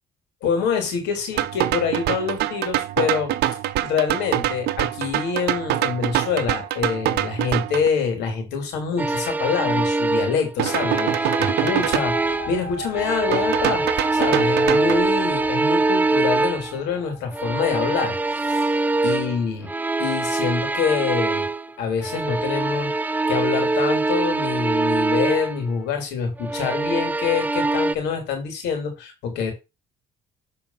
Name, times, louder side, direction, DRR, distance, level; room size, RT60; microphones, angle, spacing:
voice 1, 0.4-3.3 3.8-13.9 14.1-18.2 18.5-19.7 20.0-21.5 21.8-22.9 23.3-29.5, left 6 dB, 90° left, 3.4 m, -26 dB
sound 1, 1.4-7.9 10.6-12.0 13.3-15.0, right 13 dB, 75° right, 0.7 m, -25 dB
sound 2, 9.0-12.6 12.9-16.8 17.3-21.7 22.0-25.6 26.4-28.0, right 2 dB, 10° right, 0.5 m, -23 dB
sound 3, 11.7-19.1, equal, 70° left, 2.3 m, -39 dB
7.2 x 4.6 x 5.8 m
cardioid pair, 110°, 17 cm